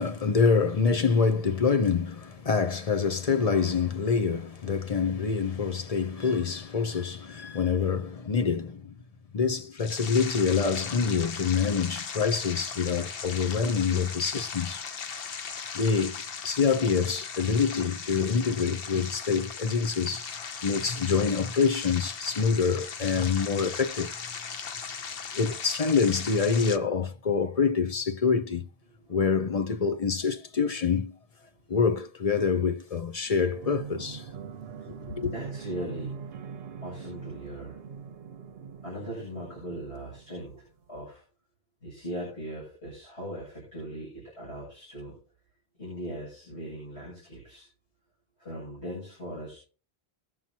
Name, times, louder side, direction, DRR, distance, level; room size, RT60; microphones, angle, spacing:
voice 1, 0.0-9.0 9.3-14.8 15.7-20.3 20.6-24.1 25.3-28.7 29.1-31.1 31.7-34.3 35.2-35.3, left 5 dB, 40° left, 0.8 m, -26 dB
sound 1, 9.8-26.8, left 6 dB, 60° left, 1.0 m, -38 dB
voice 2, 24.5-25.0 29.1-29.2 31.7-31.8 35.2-36.1 36.8-37.8 38.8-41.2 41.8-45.2 45.8-47.7 48.4-49.6, equal, 75° left, 8.3 m, -39 dB
sound 2, 33.3-40.8, right 6 dB, 65° right, 1.0 m, -42 dB
21.5 x 7.4 x 2.8 m
omnidirectional pair, 1.1 m